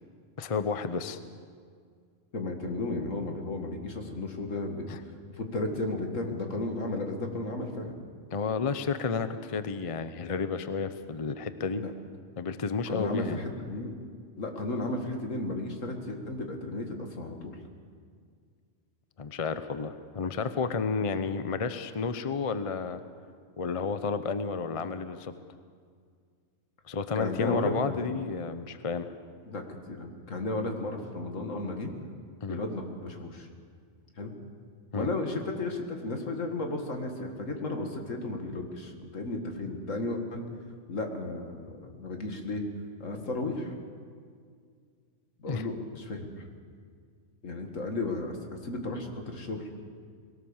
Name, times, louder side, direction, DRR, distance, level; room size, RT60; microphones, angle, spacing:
voice 1, 0.4-1.2 4.9-5.0 8.3-11.8 12.4-13.4 19.2-23.0 23.6-25.3 26.9-29.1 32.4-32.6 34.9-35.1 45.4-45.7, left 5 dB, 35° left, 11 dB, 0.6 m, -31 dB
voice 2, 2.3-4.9 5.4-8.0 11.7-11.9 12.9-13.9 14.4-17.5 27.1-28.0 29.5-31.9 32.5-33.5 34.2-34.3 34.9-40.4 40.9-42.6 43.0-43.7 45.4-46.4 47.4-49.7, left 2 dB, 70° left, 3 dB, 2.3 m, -34 dB
21.0 x 18.0 x 7.2 m, 2.1 s
omnidirectional pair, 1.4 m